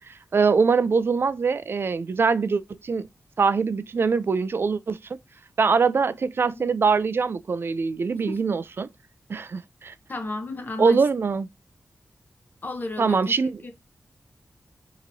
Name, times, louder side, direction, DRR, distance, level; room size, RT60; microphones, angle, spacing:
voice 1, 0.0-3.1 3.4-5.2 5.6-8.9 9.3-9.9 10.8-11.5 13.0-13.6, right 5 dB, 55° right, 0.4 m, -23 dB
voice 2, 8.1-8.4 10.1-11.0 12.6-13.4 13.6-13.7, left 2 dB, 40° left, 1.2 m, -33 dB
5.2 x 3.0 x 2.7 m
wide cardioid pair, 95°, 5 cm